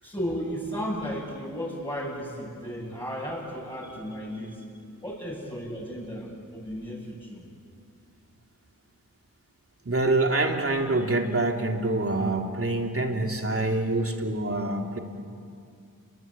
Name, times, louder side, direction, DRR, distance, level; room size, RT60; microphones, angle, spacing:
voice 1, 0.0-4.6 5.0-7.5, equal, 15° left, -7 dB, 7.9 m, -34 dB
voice 2, 9.8-15.0, right 2 dB, 40° right, 2 dB, 3.2 m, -26 dB
28.5 x 22.0 x 9.0 m, 2.4 s
cardioid pair, 55°, 35 cm